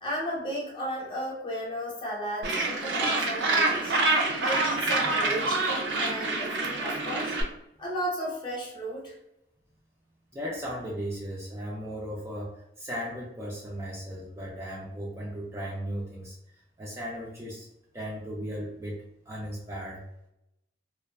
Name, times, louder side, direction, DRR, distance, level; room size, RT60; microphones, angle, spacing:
voice 1, 0.0-3.9 4.4-7.4 7.8-9.1, equal, 25° left, -3 dB, 0.7 m, -34 dB
Gull seagull, 2.4-7.4, right 2 dB, 80° right, 0.5 m, -26 dB
voice 2, 10.3-17.7 17.9-20.0, equal, 15° right, -4 dB, 0.4 m, -36 dB
2.4 x 2.3 x 2.3 m, 0.84 s
head